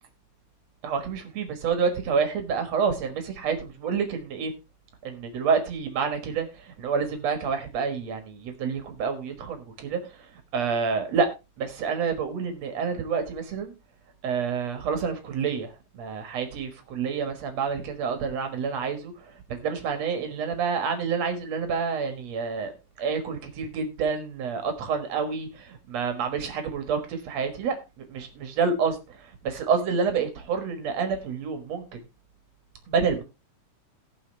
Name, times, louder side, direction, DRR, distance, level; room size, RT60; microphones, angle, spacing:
voice 1, 0.8-4.5 5.0-10.0 10.5-11.3 11.6-13.7 14.2-22.7 23.0-31.8 32.9-33.2, right 5 dB, 60° right, 7 dB, 2.4 m, -28 dB
18.5 x 6.1 x 3.2 m, 0.26 s
omnidirectional pair, 3.8 m